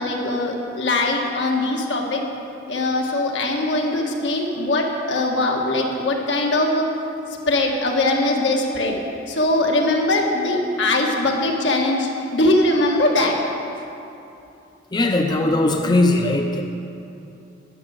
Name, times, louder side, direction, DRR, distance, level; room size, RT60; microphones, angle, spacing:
voice 1, 0.0-2.2 2.7-6.9 7.5-9.0 9.3-13.3, left 2 dB, 80° left, 0 dB, 1.6 m, -21 dB
voice 2, 14.9-16.6, left 2 dB, 25° left, 3 dB, 0.5 m, -19 dB
12.0 x 6.1 x 8.8 m, 2.8 s
head